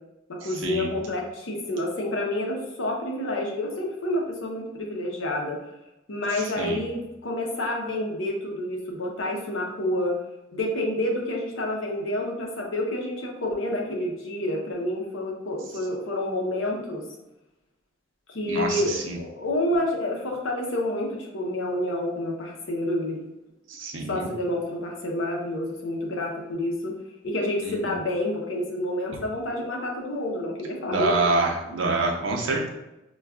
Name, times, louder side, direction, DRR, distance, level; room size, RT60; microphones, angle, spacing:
voice 1, 0.3-5.6 6.1-10.1 10.5-17.0 18.3-23.2 24.1-26.9 27.2-31.8, left 1 dB, 80° left, 0 dB, 0.7 m, -29 dB
voice 2, 18.5-19.2 23.7-24.3 27.6-27.9 30.9-32.7, right 3 dB, 80° right, 1 dB, 0.6 m, -26 dB
4.6 x 2.3 x 2.3 m, 0.95 s
head